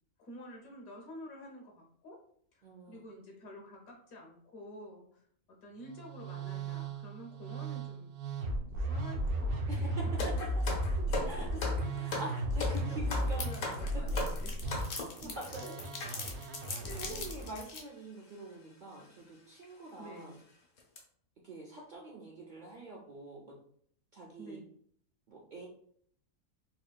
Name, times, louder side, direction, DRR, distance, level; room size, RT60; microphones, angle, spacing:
voice 1, 0.2-2.2 2.5-8.1 8.7-10.0 10.9-12.0 12.7-14.5 14.9-15.7 16.8-17.2 20.0-20.3 24.4-24.7, left 1 dB, 75° left, 0 dB, 1.3 m, -50 dB
voice 2, 2.6-3.0 9.7-10.8 11.3-11.5 12.0-14.1 15.2-15.8 16.4-16.6 17.0-20.4 21.4-23.6 24.1-24.6 25.3-25.7, right 2 dB, 60° right, -1 dB, 0.5 m, -45 dB
Musical instrument, 5.8-17.6, right 1 dB, 90° right, 1.1 m, -35 dB
sound 1, 10.2-15.2 16.0-16.2 16.9-17.0 17.2-17.4 18.3-18.5 19.0-19.1 19.6-19.7 20.2-20.4 20.8-21.0, left 3 dB, 90° left, 1.5 m, -38 dB
sound 2, 12.7-12.8 13.0-17.8, left 4 dB, 55° left, 0.9 m, -43 dB
4.2 x 3.0 x 2.2 m, 0.62 s
omnidirectional pair, 1.5 m